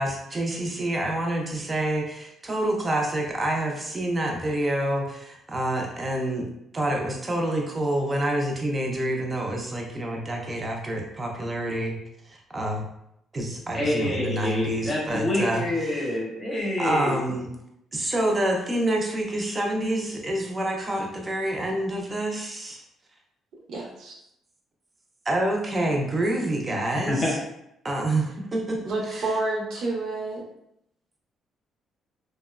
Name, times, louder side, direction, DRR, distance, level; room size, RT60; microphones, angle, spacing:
voice 1, 0.0-6.5 6.7-12.0 12.3-12.8 13.3-16.1 16.8-17.5 17.9-22.8 25.3-27.4 27.8-28.8 29.1-29.3, right 1 dB, 20° right, 1 dB, 0.5 m, -27 dB
voice 2, 13.7-17.2 26.7-26.8 27.1-27.3, left 1 dB, 25° left, -4 dB, 0.8 m, -27 dB
voice 3, 23.7-24.1 28.8-30.4, right 2 dB, 65° right, -2 dB, 0.7 m, -29 dB
2.8 x 2.1 x 2.3 m, 0.80 s
cardioid pair, 130°, 0 cm